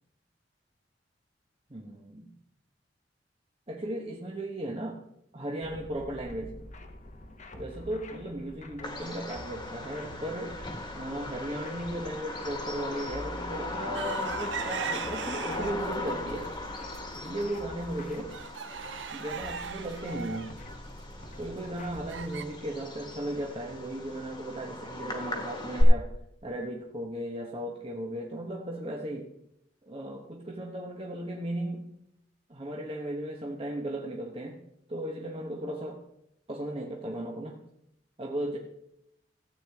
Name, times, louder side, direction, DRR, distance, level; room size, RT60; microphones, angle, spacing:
voice 1, 1.7-2.3 3.7-5.0 5.3-6.5 7.5-10.6 10.9-16.5 17.1-18.3 19.1-20.5 21.4-26.1 26.4-29.3 29.8-31.9 32.5-34.6 34.9-36.0 36.5-37.6 38.2-38.6, right 1 dB, 30° right, 0 dB, 1.1 m, -36 dB
sound 1, 5.6-22.2, left 1 dB, 40° left, 1.0 m, -47 dB
Bird vocalization bird call bird song, 8.8-25.8, left 1 dB, 25° left, 1.6 m, -37 dB
sound 2, 13.9-16.0 16.4-17.0 17.4-17.5 17.8-22.5, right 6 dB, 90° right, 0.7 m, -38 dB
14.5 x 8.3 x 3.5 m, 0.79 s
head